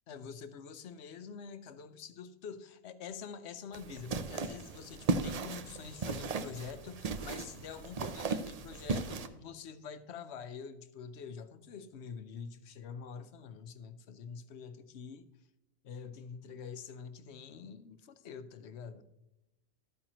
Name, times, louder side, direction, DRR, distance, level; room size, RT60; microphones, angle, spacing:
voice 1, 0.1-15.3 15.8-19.0, left 6 dB, 60° left, 0.9 m, -46 dB
sound 1, 3.7-9.3, right 4 dB, 60° right, 0.4 m, -36 dB
12.5 x 8.8 x 3.0 m
omnidirectional pair, 1.4 m